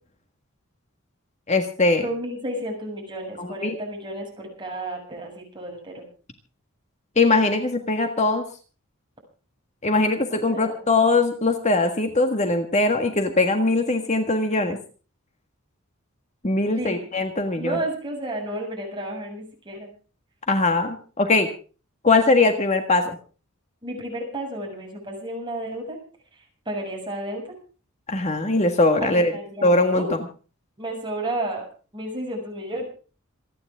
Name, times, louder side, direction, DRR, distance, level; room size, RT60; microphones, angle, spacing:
voice 1, 1.5-2.0 3.4-3.7 7.2-8.5 9.8-14.8 16.4-17.8 20.5-21.5 22.0-23.2 28.1-29.3 29.6-30.1, left 2 dB, 30° left, 5 dB, 1.7 m, -21 dB
voice 2, 2.0-6.0 10.3-10.8 16.7-17.1 17.6-19.9 23.8-26.0 26.3-27.6 29.0-30.1 30.8-31.6 31.9-32.8, right 1 dB, 20° right, 0 dB, 7.4 m, -32 dB
27.5 x 10.5 x 3.7 m, 0.38 s
head